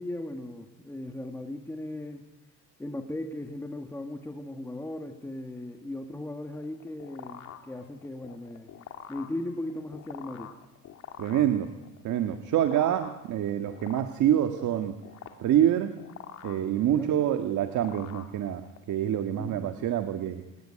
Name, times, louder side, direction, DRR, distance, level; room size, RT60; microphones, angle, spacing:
voice 1, 0.0-2.2 2.8-8.7 9.1-10.5 16.9-17.1 19.3-19.9, left 1 dB, 5° left, 4 dB, 1.8 m, -37 dB
sound 1, 6.5-18.9, left 9 dB, 55° left, 2.7 m, -46 dB
voice 2, 11.2-11.7 12.0-15.0 15.4-16.0 16.4-20.4, right 11 dB, 60° right, 8 dB, 1.8 m, -26 dB
26.5 x 19.0 x 10.0 m, 1.0 s
cardioid pair, 145°, 33 cm